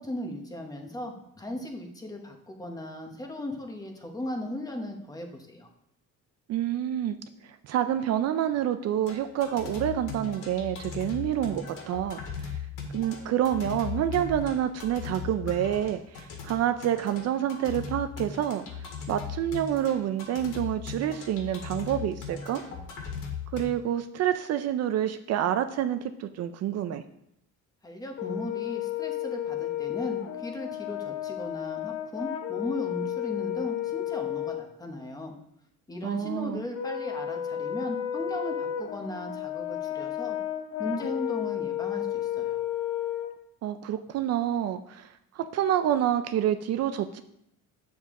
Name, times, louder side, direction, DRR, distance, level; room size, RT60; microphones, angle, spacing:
voice 1, 0.0-5.7 27.8-35.3 35.9-40.4 40.8-42.6, left 1 dB, 10° left, 3 dB, 1.0 m, -37 dB
voice 2, 6.5-7.2 7.4-12.6 12.9-18.6 19.1-22.6 23.5-27.0 36.0-36.6 43.6-47.2, right 11 dB, 55° right, 9 dB, 0.4 m, -28 dB
sound 1, 9.0-23.6, left 6 dB, 80° left, 2.0 m, -38 dB
Brass instrument, 28.2-34.6 36.7-43.3, left 11 dB, 50° left, 0.9 m, -32 dB
8.8 x 7.1 x 3.7 m, 0.75 s
cardioid pair, 180°, 31 cm